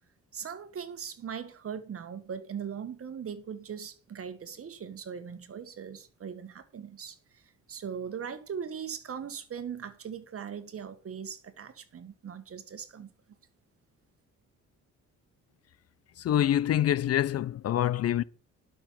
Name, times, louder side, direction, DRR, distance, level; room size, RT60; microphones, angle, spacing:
voice 1, 0.3-7.4 7.7-13.1, right 7 dB, 50° right, 1.7 m, -40 dB
voice 2, 16.2-18.2, left 11 dB, 55° left, 0.6 m, -26 dB
11.5 x 6.4 x 5.8 m
cardioid pair, 90°, 30 cm